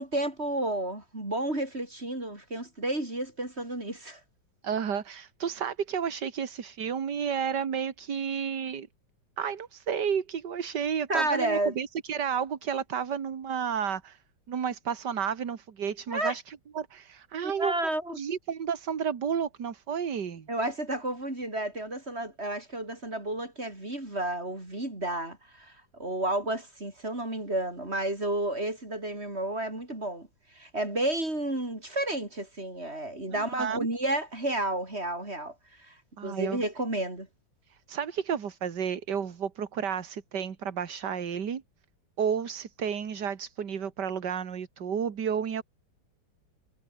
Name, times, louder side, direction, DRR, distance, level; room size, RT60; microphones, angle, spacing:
voice 1, 0.0-4.2 11.1-11.7 16.1-16.3 17.4-18.2 20.5-36.0 36.2-37.3, right 1 dB, 30° right, 6.1 m, -31 dB
voice 2, 4.6-8.9 9.4-14.2 14.5-17.7 18.2-20.5 33.3-33.8 36.2-36.6 37.7-41.6 42.2-45.6, right 7 dB, 60° right, 2.3 m, -31 dB
omnidirectional pair, 2.1 m